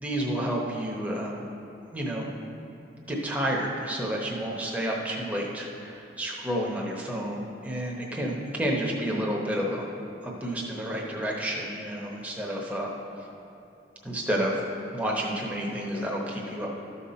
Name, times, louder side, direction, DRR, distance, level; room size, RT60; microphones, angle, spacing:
voice 1, 0.0-1.4 1.9-2.3 3.0-9.9 10.2-12.9 14.0-14.6 14.9-16.8, right 1 dB, 10° right, -3 dB, 0.9 m, -30 dB
13.0 x 5.6 x 4.3 m, 2.9 s
head